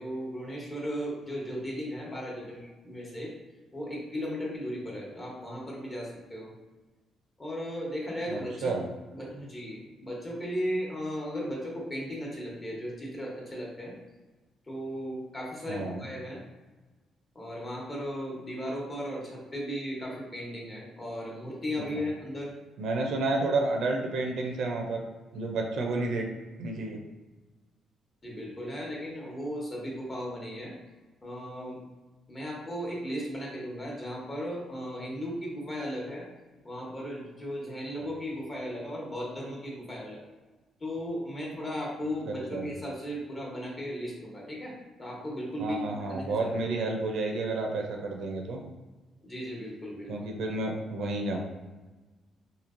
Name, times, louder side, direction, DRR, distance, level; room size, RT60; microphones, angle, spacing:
voice 1, 0.0-3.3 3.7-6.5 7.4-8.7 9.1-13.9 14.7-16.4 17.3-22.5 28.2-30.7 31.2-31.8 32.3-36.3 36.6-40.2 40.8-46.5 49.2-50.1, equal, 30° left, -3 dB, 1.0 m, -36 dB
voice 2, 8.3-8.9 15.7-16.1 22.8-25.0 25.3-26.2 26.6-27.0 42.5-42.7 45.6-48.6 50.1-51.4, right 2 dB, 75° right, 2 dB, 0.5 m, -30 dB
3.0 x 2.7 x 2.5 m, 1.2 s
cardioid pair, 90°, 0 cm